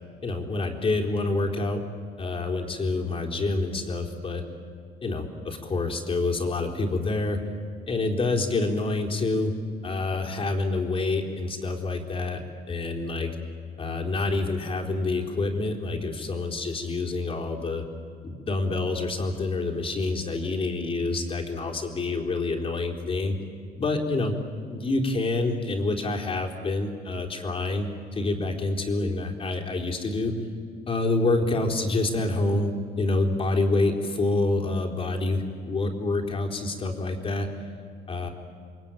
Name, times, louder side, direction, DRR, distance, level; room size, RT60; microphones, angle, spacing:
voice 1, 0.2-1.8 2.2-4.4 5.0-7.4 7.9-9.5 9.8-12.4 12.7-13.3 13.8-17.8 18.2-23.4 23.8-24.3 24.7-30.3 30.9-32.7 33.0-37.5 38.1-38.3, left 2 dB, 35° left, 2 dB, 3.9 m, -27 dB
29.0 x 22.5 x 9.1 m, 2.2 s
cardioid pair, 110°, 17 cm